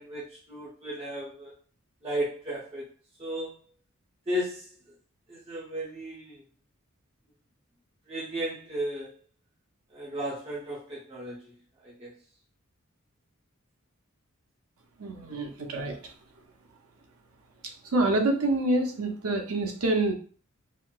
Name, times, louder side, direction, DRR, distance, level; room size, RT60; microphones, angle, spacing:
voice 1, 0.0-1.5 2.0-2.9 3.2-3.6 4.3-4.7 5.3-6.4 8.1-9.1 9.9-11.5 11.8-12.1, equal, 25° right, -6 dB, 0.7 m, -34 dB
voice 2, 15.0-15.9 17.9-20.1, right 2 dB, 85° right, 3 dB, 0.7 m, -26 dB
4.2 x 2.0 x 2.3 m, 0.41 s
head